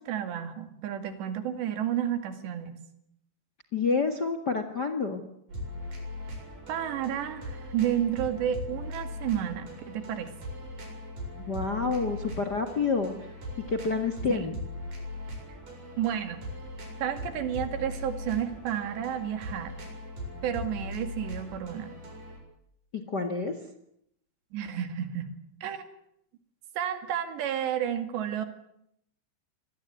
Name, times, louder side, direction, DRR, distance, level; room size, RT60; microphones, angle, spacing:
voice 1, 0.0-2.8 6.7-10.3 14.3-14.4 16.0-16.4 17.0-19.7 20.4-21.9 24.5-25.3 25.6-25.8 26.8-28.5, right 10 dB, 80° right, 10 dB, 4.4 m, -31 dB
voice 2, 3.7-5.2 11.5-13.1 13.7-14.5 22.9-23.6, left 4 dB, 50° left, 9 dB, 1.2 m, -28 dB
sound 1, 5.5-22.4, left 1 dB, 50° right, 8.9 m, -40 dB
25.5 x 18.5 x 9.5 m, 0.74 s
omnidirectional pair, 5.0 m